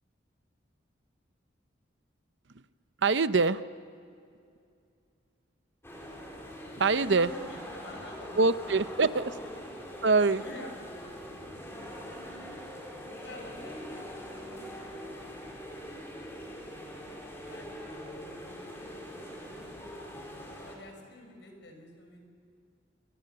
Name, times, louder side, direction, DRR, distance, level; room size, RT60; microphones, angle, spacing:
voice 1, 3.0-3.6 6.8-7.3 8.4-9.3 10.0-10.4, right 4 dB, 70° right, 13 dB, 0.8 m, -24 dB
sound 1, 5.8-20.8, equal, 15° left, 4.1 m, -43 dB
voice 2, 6.9-8.8 9.4-9.5 10.3-11.2 13.2-15.3 16.7-17.2 17.4-18.8 20.6-22.2, left 1 dB, 70° left, 3 dB, 5.9 m, -48 dB
28.0 x 23.0 x 6.8 m, 2.4 s
head